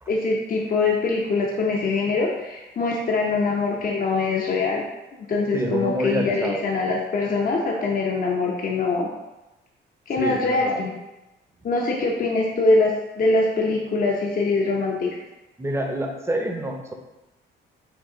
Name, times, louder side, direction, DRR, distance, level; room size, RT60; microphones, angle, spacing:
voice 1, 0.1-4.8 5.3-9.1 10.1-11.0 11.6-15.2, left 3 dB, 45° left, -1 dB, 0.8 m, -23 dB
voice 2, 5.5-6.6 10.2-10.8 15.6-16.9, right 1 dB, 15° right, 2 dB, 0.7 m, -27 dB
5.3 x 2.6 x 3.8 m, 1.0 s
cardioid pair, 90°, 20 cm